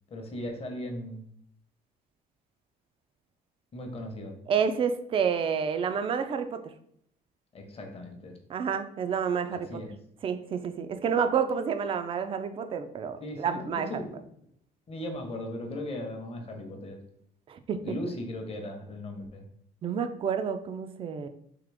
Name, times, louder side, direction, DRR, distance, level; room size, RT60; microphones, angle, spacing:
voice 1, 0.1-1.2 3.7-4.3 7.5-8.3 9.5-10.0 13.2-14.2 14.9-17.0 17.8-19.5, left 1 dB, 35° left, 3 dB, 0.8 m, -37 dB
voice 2, 4.5-6.6 8.5-9.8 10.2-13.9 17.5-17.8 19.8-21.3, right 7 dB, 35° right, 9 dB, 0.3 m, -29 dB
3.7 x 2.8 x 3.3 m, 0.68 s
cardioid pair, 110°, 17 cm